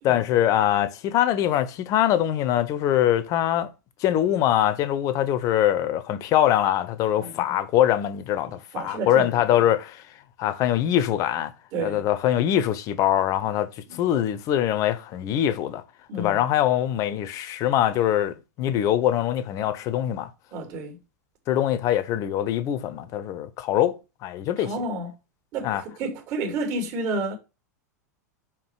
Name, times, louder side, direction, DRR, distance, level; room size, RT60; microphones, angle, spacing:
voice 1, 0.0-3.7 4.0-10.0 10.4-11.5 11.8-15.8 16.2-20.3 21.5-24.7 25.6-25.8, left 11 dB, 40° left, 1.1 m, -23 dB
voice 2, 8.4-9.6 11.7-12.0 13.9-14.0 16.1-16.4 20.5-21.0 24.6-25.1 25.5-27.4, right 2 dB, 40° right, 3.1 m, -31 dB
5.6 x 5.2 x 4.8 m
figure-of-eight pair, 90°, 9 cm